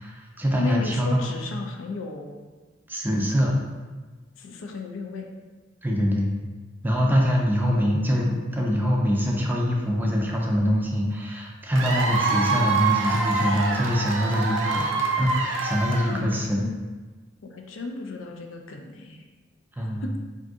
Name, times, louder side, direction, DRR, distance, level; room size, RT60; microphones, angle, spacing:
voice 1, 0.0-1.3 2.9-3.6 5.8-6.3 6.8-14.9 15.2-16.6 19.8-20.1, equal, 10° right, -1 dB, 0.4 m, -24 dB
voice 2, 0.6-2.4 4.4-5.3 16.1-16.9 17.4-19.3 19.8-20.1, left 3 dB, 80° left, 3 dB, 0.4 m, -34 dB
Cheering / Applause / Crowd, 11.8-16.5, right 4 dB, 70° right, 0.5 m, -26 dB
2.6 x 2.5 x 3.5 m, 1.3 s
head